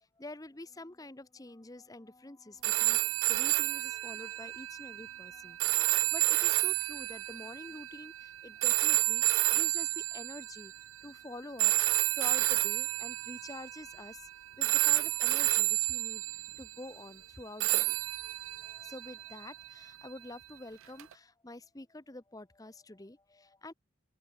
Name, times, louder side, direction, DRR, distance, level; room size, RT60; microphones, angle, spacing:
voice 1, 0.2-10.7 11.0-14.3 14.6-16.3 16.6-23.7, left 2 dB, 15° left, 0.8 m, -48 dB
sound 1, 2.6-10.8 11.6-14.3 14.6-16.7 17.6-19.8 21.0-21.1, right 18 dB, 75° right, 0.4 m, -30 dB
open air
head